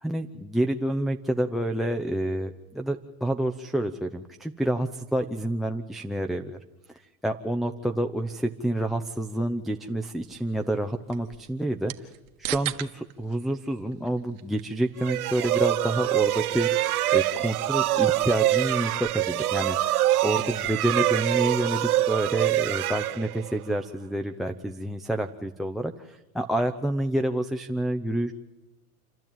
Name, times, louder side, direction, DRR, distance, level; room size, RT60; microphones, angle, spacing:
voice 1, 0.0-6.6 7.2-12.1 12.4-28.3, right 1 dB, ahead, 9 dB, 0.7 m, -28 dB
sound 1, 10.2-20.9, right 16 dB, 60° right, 1.6 m, -43 dB
sound 2, 15.0-23.8, right 14 dB, 80° right, 1.0 m, -25 dB
28.5 x 12.0 x 9.1 m, 1.1 s
hypercardioid pair, 120°, 44 cm